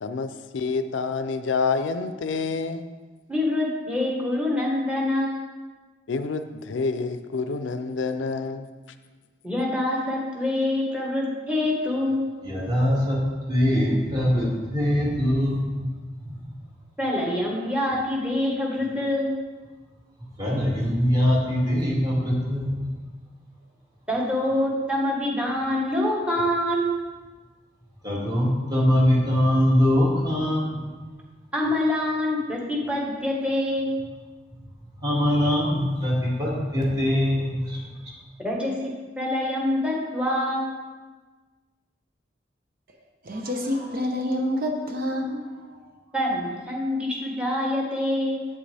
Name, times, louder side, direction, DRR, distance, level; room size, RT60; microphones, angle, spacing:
voice 1, 0.0-2.9 6.1-8.7, left 4 dB, 85° left, 9 dB, 0.5 m, -28 dB
voice 2, 3.3-5.4 9.4-12.3 17.0-19.3 24.1-27.0 31.5-33.9 38.4-38.7 39.2-40.8 46.1-48.5, left 1 dB, 5° right, -3 dB, 1.4 m, -25 dB
voice 3, 12.4-13.2 13.5-15.9 16.2-16.5 20.4-22.9 28.0-30.9 35.0-37.8, equal, 25° right, -5 dB, 2.2 m, -23 dB
voice 4, 43.2-45.9, left 1 dB, 55° right, 2 dB, 0.9 m, -28 dB
8.3 x 7.5 x 3.4 m, 1.3 s
head